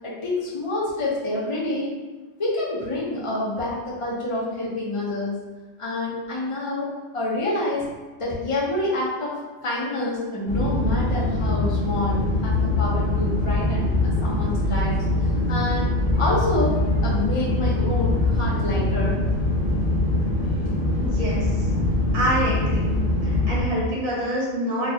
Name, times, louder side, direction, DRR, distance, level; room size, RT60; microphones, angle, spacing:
voice 1, 0.0-1.9 2.4-5.3 5.8-7.9 8.2-9.3 9.6-15.9 16.2-19.2, left 1 dB, 25° left, -6 dB, 0.8 m, -27 dB
sound 1, 10.5-23.6, left 2 dB, 40° right, 1.0 m, -23 dB
voice 2, 21.0-21.7 22.1-23.0 23.2-24.9, equal, 60° right, -6 dB, 1.5 m, -26 dB
4.4 x 2.5 x 2.8 m, 1.2 s
omnidirectional pair, 1.4 m